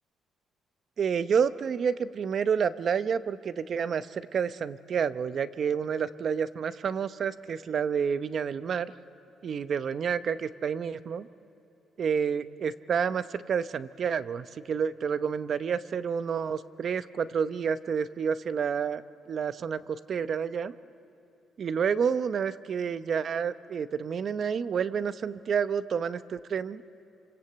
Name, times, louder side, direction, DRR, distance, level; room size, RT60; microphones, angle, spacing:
voice 1, 1.0-8.9 9.4-11.3 12.0-20.7 21.6-26.8, right 7 dB, 55° right, 13 dB, 0.8 m, -29 dB
28.0 x 26.5 x 8.0 m, 2.9 s
cardioid pair, 90°, 0 cm